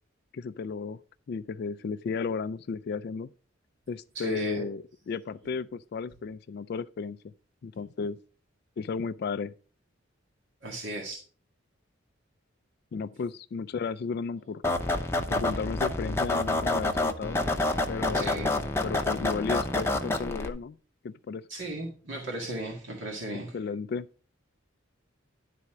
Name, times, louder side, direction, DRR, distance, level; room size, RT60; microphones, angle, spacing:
voice 1, 0.3-1.0 1.3-3.3 3.9-7.2 7.6-8.2 8.8-9.5 12.9-14.6 15.3-17.4 17.9-20.8 21.0-21.4 23.5-24.1, left 5 dB, 50° left, 0.3 m, -34 dB
voice 2, 4.1-4.7 10.6-11.2 18.1-18.5 21.5-23.6, right 1 dB, 65° right, 1.9 m, -36 dB
sound 1, 14.6-20.5, left 2 dB, 10° left, 0.7 m, -28 dB
11.0 x 4.2 x 6.0 m
head